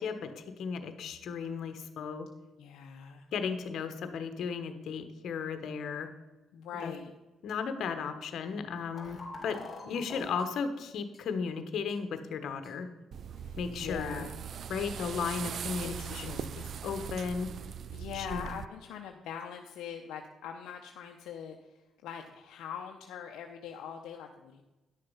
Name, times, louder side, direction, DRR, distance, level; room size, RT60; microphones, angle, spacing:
voice 1, 0.0-2.3 3.3-6.1 6.8-6.9 7.4-9.6 9.9-12.9 13.6-14.3 14.7-17.5 18.1-18.4, left 5 dB, 70° left, 9 dB, 1.2 m, -35 dB
voice 2, 2.6-3.3 6.5-7.1 9.8-10.1 13.4-14.3 15.8-16.6 17.9-24.6, left 8 dB, 85° left, 2 dB, 0.7 m, -43 dB
sound 1, 8.9-10.4 11.1-11.2 11.9-12.0 12.6-12.7, left 3 dB, 35° left, 2.8 m, -45 dB
sound 2, 13.1-18.7, right 8 dB, 60° right, 0.3 m, -40 dB
10.5 x 6.6 x 5.6 m, 1.1 s
cardioid pair, 90°, 0 cm